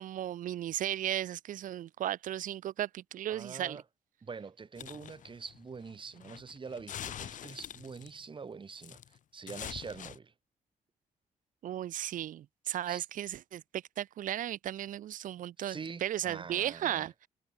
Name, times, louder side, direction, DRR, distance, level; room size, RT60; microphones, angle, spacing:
voice 1, 0.0-3.8 11.6-17.3, right 12 dB, 85° right, 2.4 m, -35 dB
voice 2, 3.3-3.8 4.2-10.3 12.9-13.0 15.6-17.1, right 5 dB, 40° right, 3.6 m, -45 dB
sound 1, 4.8-8.2 8.8-9.2 9.5-10.2, left 10 dB, 75° left, 2.3 m, -45 dB
cardioid pair, 90°, 13 cm